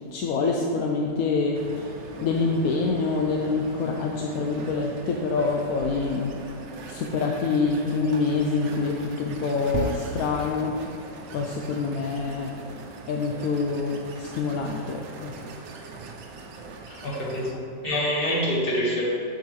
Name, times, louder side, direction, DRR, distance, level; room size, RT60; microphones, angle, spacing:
voice 1, 0.1-6.3 6.8-10.8 11.3-12.5 13.1-15.3, left 4 dB, 70° left, 1 dB, 0.9 m, -26 dB
sound 1, 1.5-17.5, right 3 dB, 85° right, 1.4 m, -39 dB
voice 2, 16.9-19.1, equal, 35° left, -6 dB, 1.7 m, -26 dB
7.5 x 6.9 x 3.2 m, 2.6 s
omnidirectional pair, 1.9 m